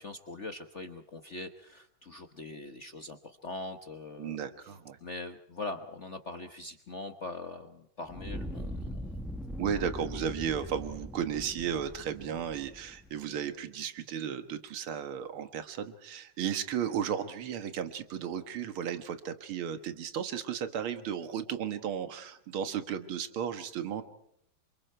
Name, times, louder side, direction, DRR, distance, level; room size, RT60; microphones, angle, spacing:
voice 1, 0.0-4.7 5.0-9.2, left 2 dB, 40° left, 6 dB, 1.1 m, -42 dB
voice 2, 4.2-5.0 9.6-24.0, right 8 dB, 75° right, 9 dB, 2.3 m, -34 dB
Fire, 8.0-13.2, equal, ahead, 0.8 m, -41 dB
28.5 x 25.5 x 4.5 m, 0.72 s
omnidirectional pair, 2.4 m